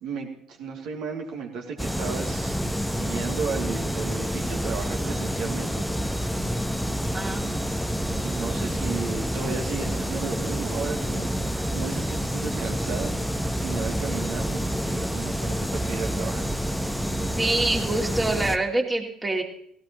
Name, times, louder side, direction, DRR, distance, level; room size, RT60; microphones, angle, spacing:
voice 1, 0.0-2.6 3.0-5.9 7.2-7.7 8.2-11.3 11.7-16.5, right 5 dB, 55° right, 1 dB, 2.7 m, -34 dB
sound 1, 1.8-18.6, equal, ahead, 1.0 m, -28 dB
voice 2, 17.4-19.4, right 2 dB, 20° right, 0 dB, 2.7 m, -25 dB
18.0 x 17.5 x 3.1 m, 0.66 s
figure-of-eight pair, 55°, 0 cm